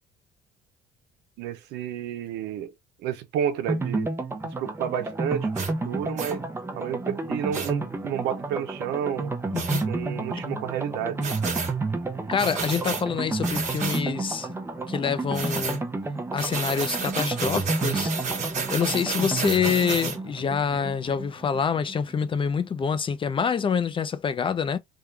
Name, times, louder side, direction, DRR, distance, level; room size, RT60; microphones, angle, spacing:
voice 1, 1.4-2.7 3.0-4.1 4.4-5.5 5.8-6.4 6.8-9.3 9.8-11.3, right 9 dB, 90° right, 0.7 m, -30 dB
sound 1, 3.7-22.3 22.6-22.7 22.9-23.0, right 3 dB, 15° right, 0.7 m, -31 dB
sound 2, 5.5-5.7 6.2-6.3 7.5-7.7 9.5-9.8 11.2-11.7 12.4-13.0 13.4-14.0 15.3-15.8 16.4-20.2, right 5 dB, 45° right, 1.1 m, -31 dB
voice 2, 9.5-9.8 10.5-10.6 12.3-14.5 14.9-15.8 16.3-18.1 18.7-24.8, left 6 dB, 30° left, 0.5 m, -26 dB
3.5 x 2.3 x 3.2 m
cardioid pair, 110°, 17 cm